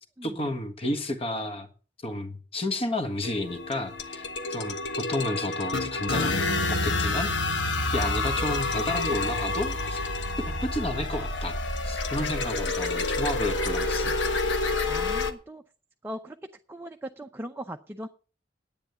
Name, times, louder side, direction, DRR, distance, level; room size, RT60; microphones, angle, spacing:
voice 1, 0.2-1.7 2.0-7.3 7.9-10.0 10.5-11.6 11.8-14.2, left 1 dB, 35° left, 1.5 m, -31 dB
sound 1, 3.2-15.3, left 2 dB, 90° left, 1.3 m, -28 dB
voice 2, 14.9-15.6 16.0-16.4 16.7-18.1, right 1 dB, 10° right, 0.6 m, -39 dB
10.0 x 9.0 x 6.8 m
head